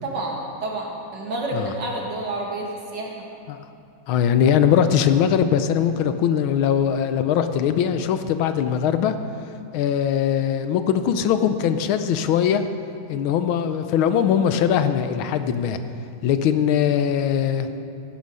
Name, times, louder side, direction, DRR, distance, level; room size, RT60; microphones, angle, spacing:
voice 1, 0.0-3.1, right 2 dB, 60° right, -1 dB, 2.4 m, -29 dB
voice 2, 4.1-9.2 9.7-12.6 13.1-15.8 16.2-17.7, left 8 dB, 85° left, 10 dB, 1.5 m, -21 dB
15.0 x 9.5 x 5.6 m, 2.5 s
omnidirectional pair, 2.2 m